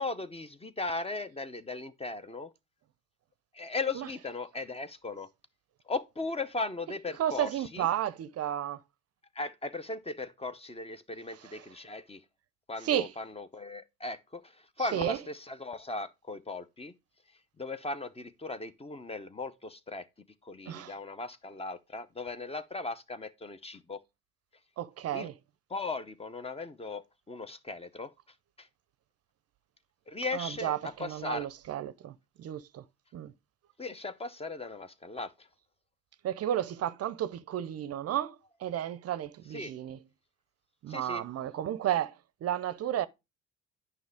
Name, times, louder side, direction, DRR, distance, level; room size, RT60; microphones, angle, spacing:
voice 1, 0.0-2.5 3.5-5.3 5.9-7.9 9.3-12.2 12.7-16.9 17.6-20.1 20.4-24.0 25.1-25.3 25.7-28.1 28.6-28.7 30.1-31.5 33.8-35.5 39.5-39.7 40.9-41.2, left 3 dB, 20° left, 0.7 m, -37 dB
voice 2, 7.2-8.8 11.4-11.7 12.8-13.1 14.9-15.2 20.7-20.9 24.8-25.3 30.3-32.8 33.1-33.3 36.2-40.0 40.8-43.1, right 11 dB, 50° right, 0.6 m, -33 dB
9.4 x 5.5 x 3.4 m
hypercardioid pair, 55°, 33 cm